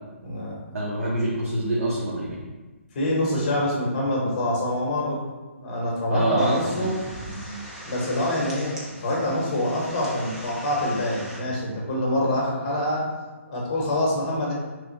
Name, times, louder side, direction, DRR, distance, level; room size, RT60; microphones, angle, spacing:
voice 1, 0.2-0.6 2.9-5.2 5.6-7.0 7.8-13.0 13.5-14.5, left 1 dB, 30° left, -3 dB, 1.0 m, -25 dB
voice 2, 0.7-2.4 6.1-6.9, right 1 dB, 85° right, -6 dB, 0.9 m, -25 dB
sound 1, 6.4-11.4, equal, 5° right, 0.3 m, -40 dB
3.1 x 2.3 x 4.0 m, 1.2 s
hypercardioid pair, 165°, 7 cm